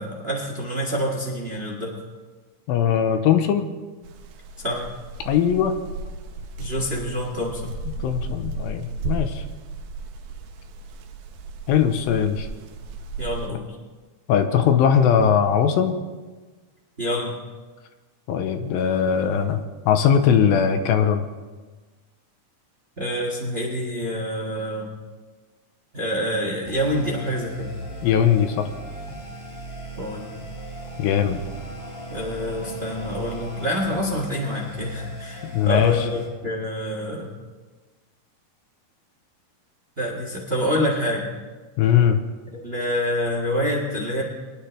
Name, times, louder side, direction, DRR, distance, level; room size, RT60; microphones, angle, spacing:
voice 1, 0.0-2.0 4.6-4.9 6.6-7.7 13.2-13.7 17.0-17.4 23.0-24.9 25.9-27.7 30.0-30.3 32.1-37.3 40.0-41.2 42.6-44.2, equal, 65° right, -1 dB, 0.6 m, -27 dB
voice 2, 2.7-3.7 5.3-5.8 7.9-9.4 11.7-12.5 14.3-15.9 18.3-21.2 28.0-28.7 31.0-31.4 35.5-35.9 41.8-42.2, left 8 dB, 85° left, 7 dB, 2.5 m, -20 dB
sound 1, 4.0-13.5, right 3 dB, 90° right, 2.6 m, -35 dB
sound 2, 26.7-36.3, equal, 50° left, 4.4 m, -37 dB
22.5 x 10.0 x 3.3 m, 1.3 s
omnidirectional pair, 4.2 m